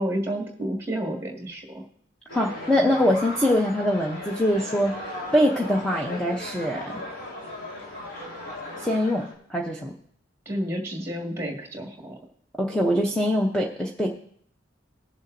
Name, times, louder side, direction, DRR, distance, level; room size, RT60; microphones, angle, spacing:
voice 1, 0.0-1.8 10.5-12.2, right 1 dB, 15° right, 0 dB, 1.8 m, -30 dB
sound 1, 2.3-9.3, left 1 dB, 80° left, 3.4 m, -37 dB
voice 2, 2.3-7.0 8.8-9.9 12.6-14.1, equal, 5° left, -1 dB, 0.7 m, -23 dB
20.0 x 7.0 x 2.6 m, 0.65 s
head